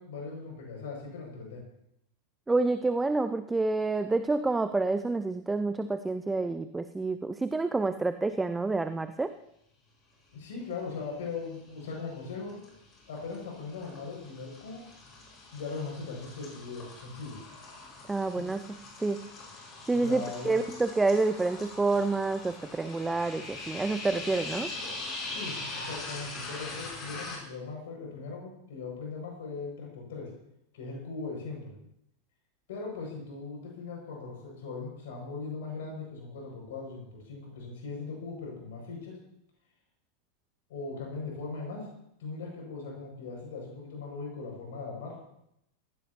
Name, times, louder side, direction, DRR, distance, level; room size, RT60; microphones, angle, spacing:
voice 1, 0.0-1.6 10.3-12.6 13.1-14.9 15.5-17.4 18.3-18.5 19.9-20.6 25.2-30.3 30.7-31.7 32.7-39.2 40.7-41.9 42.2-45.2, left 4 dB, 55° left, 0 dB, 6.6 m, -39 dB
voice 2, 2.5-9.3 18.1-18.6 19.0-19.2 19.9-24.7, right 3 dB, 10° right, 11 dB, 0.6 m, -28 dB
sound 1, 11.0-11.5 11.9-27.4, left 2 dB, 30° left, 5.7 m, -42 dB
19.0 x 16.0 x 3.0 m, 0.78 s
figure-of-eight pair, 90°, 0 cm